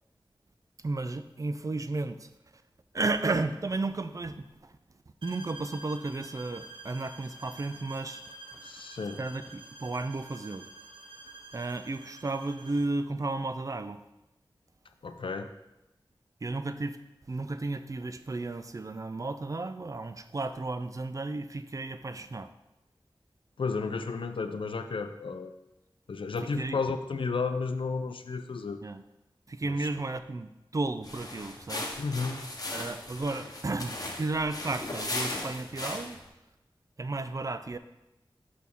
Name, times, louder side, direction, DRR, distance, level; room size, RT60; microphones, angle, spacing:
voice 1, 0.8-2.3 2.9-4.7 5.2-8.2 8.5-8.6 9.2-10.7 11.5-14.0 16.4-17.0 17.3-22.5 26.6-26.8 28.8-29.0 29.5-32.0 32.7-36.2 37.0-37.8, right 2 dB, 40° right, 11 dB, 0.4 m, -33 dB
sound 1, 5.2-13.0, right 2 dB, 85° right, 0.7 m, -49 dB
voice 2, 8.6-9.2 15.0-15.5 23.6-25.5 26.1-28.8 29.6-30.1 32.0-32.4, left 4 dB, 75° left, 8 dB, 0.5 m, -33 dB
sound 2, 31.0-36.3, left 2 dB, 45° left, 1.0 m, -37 dB
6.2 x 5.8 x 3.6 m, 0.94 s
wide cardioid pair, 60°, 9 cm